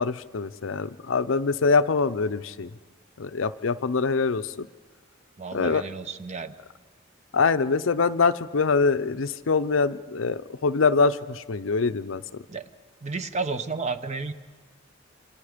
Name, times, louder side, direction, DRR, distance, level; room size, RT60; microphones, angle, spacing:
voice 1, 0.0-2.7 3.2-4.7 5.5-5.8 7.3-12.2, left 4 dB, 75° left, 12 dB, 0.6 m, -24 dB
voice 2, 5.4-6.5 12.5-12.7 13.0-14.3, right 4 dB, 35° right, 10 dB, 0.9 m, -32 dB
27.0 x 26.5 x 5.1 m, 1.4 s
head